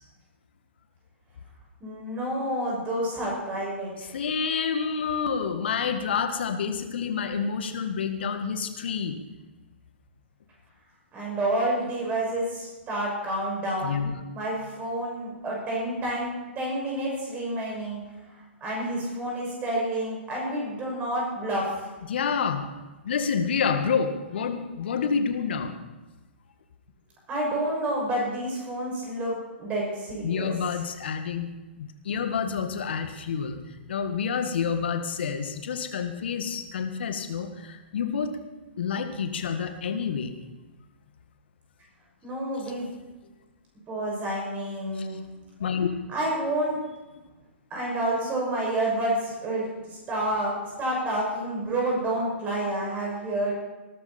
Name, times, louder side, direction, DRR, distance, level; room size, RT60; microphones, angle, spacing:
voice 1, 1.8-4.1 11.1-14.0 14.3-18.0 18.6-21.9 27.3-30.8 42.2-42.9 43.9-45.2 46.1-46.8 47.7-50.5 50.8-53.5, right 1 dB, 20° right, -3 dB, 6.6 m, -29 dB
voice 2, 4.1-9.2 13.8-14.1 22.1-22.7 23.0-25.9 30.2-31.5 31.8-33.6 33.9-38.4 38.8-40.3 45.0-45.1 45.6-45.9, left 6 dB, 60° left, 7 dB, 1.8 m, -28 dB
19.5 x 12.5 x 4.4 m, 1.2 s
figure-of-eight pair, 120°, 6 cm